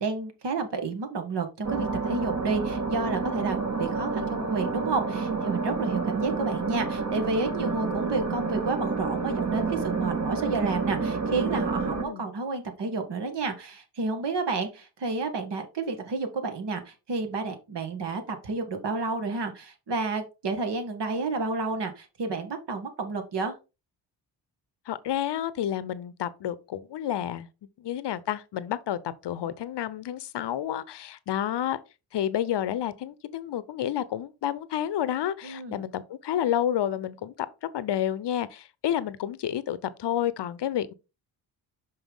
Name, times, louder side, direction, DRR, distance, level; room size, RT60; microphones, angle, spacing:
voice 1, 0.0-23.5 35.4-35.8, right 3 dB, 55° right, 1.8 m, -30 dB
sound 1, 1.6-12.0, right 4 dB, 35° right, 1.6 m, -29 dB
voice 2, 11.8-12.3 24.9-27.5 27.8-31.8 32.1-37.3 37.7-40.9, left 11 dB, 55° left, 0.9 m, -30 dB
5.6 x 5.4 x 3.6 m
hypercardioid pair, 45°, 50 cm